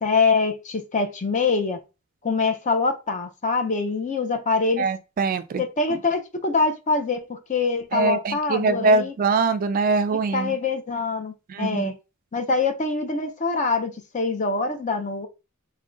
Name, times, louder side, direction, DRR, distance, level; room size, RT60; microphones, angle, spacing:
voice 1, 0.0-1.8 2.2-4.9 5.6-9.1 10.3-11.9 12.3-15.3, left 4 dB, 35° left, 0.5 m, -24 dB
voice 2, 4.8-5.6 5.9-6.0 7.9-10.6 11.5-11.9, right 4 dB, 40° right, 0.3 m, -23 dB
3.6 x 2.2 x 3.7 m
head